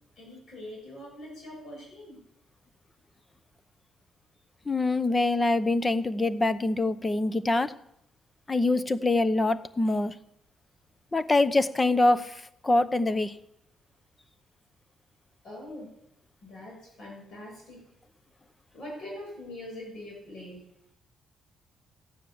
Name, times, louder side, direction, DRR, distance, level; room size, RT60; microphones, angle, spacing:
voice 1, 0.2-2.2 12.8-12.9 15.4-15.9 16.4-17.8 18.7-20.6, left 1 dB, 55° left, -2 dB, 7.5 m, -43 dB
voice 2, 4.7-7.8 8.5-10.2 11.1-13.4, left 2 dB, 20° left, 15 dB, 0.8 m, -25 dB
15.0 x 9.4 x 7.1 m, 0.79 s
cardioid pair, 90°, 0 cm